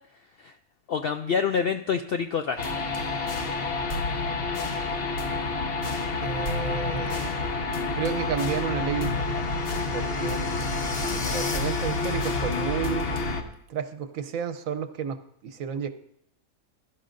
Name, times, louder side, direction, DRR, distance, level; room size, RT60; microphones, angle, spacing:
voice 1, 0.9-2.8, left 6 dB, 70° left, 7 dB, 0.5 m, -27 dB
sound 1, 2.6-13.4, left 3 dB, 50° left, 1.0 m, -28 dB
voice 2, 6.2-7.7 7.9-9.5 9.9-10.4 11.1-13.1 13.7-15.2 15.4-15.9, right 7 dB, 75° right, 9 dB, 1.1 m, -31 dB
16.0 x 12.0 x 2.6 m, 0.72 s
omnidirectional pair, 1.5 m